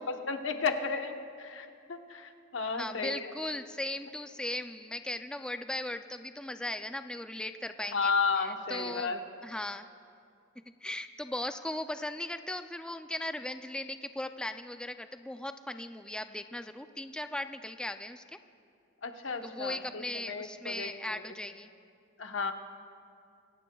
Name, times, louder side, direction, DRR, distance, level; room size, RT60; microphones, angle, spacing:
voice 1, 0.1-3.3 7.9-9.2 19.0-20.9 22.2-22.5, left 4 dB, 85° left, 5 dB, 1.0 m, -33 dB
voice 2, 2.8-8.1 8.4-9.1 9.4-9.9 10.8-18.4 19.4-21.7, left 1 dB, 5° left, 8 dB, 0.3 m, -38 dB
26.5 x 17.0 x 2.3 m, 2.4 s
head